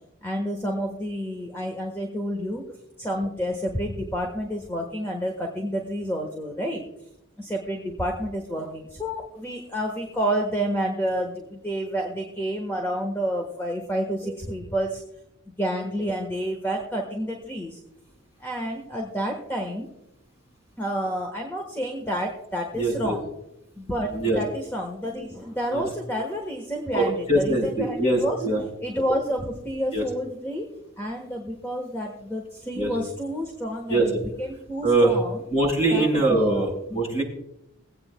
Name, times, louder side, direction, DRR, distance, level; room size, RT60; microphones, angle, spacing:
voice 1, 0.2-2.6 3.0-6.8 7.4-15.0 15.6-17.8 18.4-19.9 20.8-23.3 23.8-28.4 28.8-30.7 31.0-34.1 34.4-35.4 35.9-36.7 37.1-37.2, equal, 10° left, 1 dB, 1.2 m, -29 dB
voice 2, 22.7-23.2 24.1-24.4 25.7-25.8 26.9-28.6 29.9-30.0 32.7-32.9 33.9-34.1 34.8-35.2 35.5-37.2, right 2 dB, 30° left, -2 dB, 4.5 m, -23 dB
22.5 x 8.6 x 2.2 m, 0.83 s
head